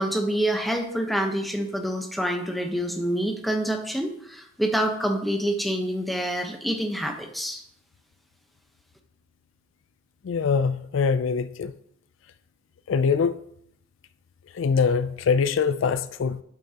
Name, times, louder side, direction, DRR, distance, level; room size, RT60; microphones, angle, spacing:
voice 1, 0.0-7.6, right 1 dB, ahead, 0.9 m, -27 dB
voice 2, 10.2-11.7 12.9-13.3 14.5-16.4, left 5 dB, 70° left, 0.4 m, -23 dB
8.4 x 8.2 x 2.9 m
head